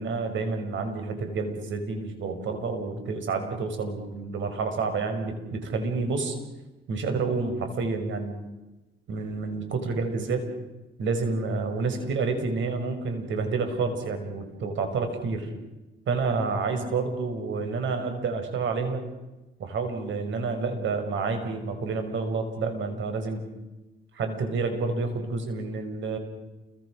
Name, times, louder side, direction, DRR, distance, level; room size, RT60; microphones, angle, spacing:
voice 1, 0.0-6.4 6.9-8.4 9.1-10.5 11.0-15.5 16.1-19.0 19.6-23.4 24.1-26.2, right 4 dB, 70° right, 7 dB, 5.8 m, -29 dB
29.5 x 24.0 x 6.5 m, 1.1 s
cardioid pair, 90°, 20 cm